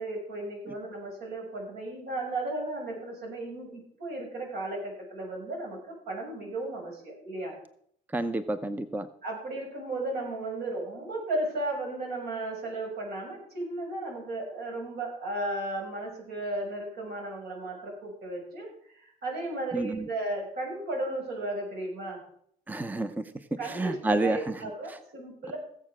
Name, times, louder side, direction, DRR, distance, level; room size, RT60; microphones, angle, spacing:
voice 1, 0.0-7.6 9.2-22.2 23.6-25.6, right 2 dB, 70° right, 0 dB, 6.6 m, -35 dB
voice 2, 8.1-9.1 19.7-20.1 22.7-23.3 23.6-24.6, right 2 dB, 10° right, 12 dB, 0.6 m, -29 dB
16.5 x 7.3 x 6.1 m, 0.66 s
cardioid pair, 110°, 17 cm